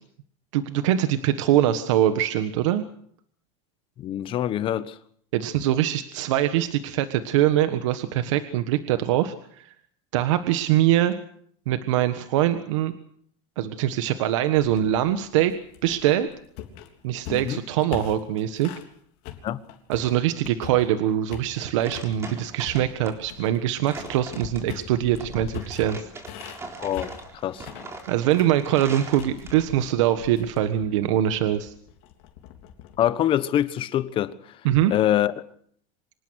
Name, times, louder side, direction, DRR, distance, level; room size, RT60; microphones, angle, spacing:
voice 1, 0.5-2.8 5.3-9.7 10.1-11.1 11.7-12.9 13.6-15.5 15.8-16.3 17.0-18.7 19.9-26.1 28.1-31.7 34.6-34.9, right 12 dB, 85° right, 1.4 m, -23 dB
voice 2, 4.0-5.0 17.3-17.6 19.4-19.6 26.8-27.1 27.4-27.7 33.0-34.3 34.9-35.3, left 11 dB, 35° left, 1.2 m, -24 dB
sound 1, 14.6-18.9 19.2-21.0 21.3-22.1 22.6-33.1, left 10 dB, 60° left, 3.5 m, -42 dB
sound 2, 21.4-29.9, right 3 dB, 15° right, 3.9 m, -41 dB
25.5 x 20.0 x 6.4 m
supercardioid pair, 150°, 16 cm